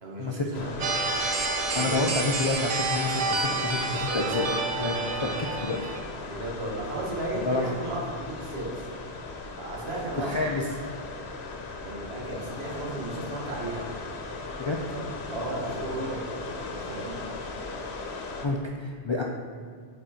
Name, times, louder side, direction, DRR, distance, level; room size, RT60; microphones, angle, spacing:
voice 1, 0.0-1.0 1.7-2.0 6.3-8.9 9.5-10.4 11.8-13.9 14.9-17.2, right 1 dB, 75° right, -3 dB, 1.5 m, -35 dB
sound 1, 0.5-18.5, left 3 dB, 80° left, 1.0 m, -38 dB
sound 2, 0.8-6.0, right 3 dB, 60° right, 0.8 m, -29 dB
voice 2, 1.7-4.5 4.8-5.8 7.3-7.8 10.2-10.6 14.6-14.8 18.4-19.2, left 3 dB, 50° left, 0 dB, 0.3 m, -29 dB
5.1 x 4.3 x 4.9 m, 2.1 s
omnidirectional pair, 1.1 m